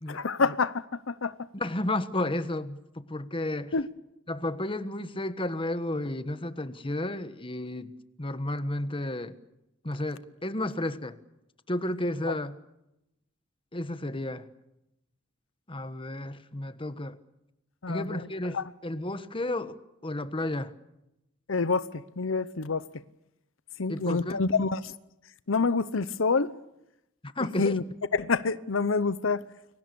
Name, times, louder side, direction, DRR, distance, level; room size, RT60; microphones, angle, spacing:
voice 1, 0.1-1.3 3.7-3.9 17.8-18.3 18.5-18.7 21.5-22.9 23.8-24.9 25.5-26.5 27.6-27.8 28.1-29.4, left 4 dB, 80° left, 0.9 m, -27 dB
voice 2, 1.5-3.7 4.3-7.9 8.2-9.3 9.8-11.2 11.7-12.6 13.7-14.5 15.7-17.2 17.9-20.7 23.9-24.4 27.2-27.8, left 1 dB, 25° left, 1.4 m, -32 dB
29.5 x 23.5 x 7.0 m
head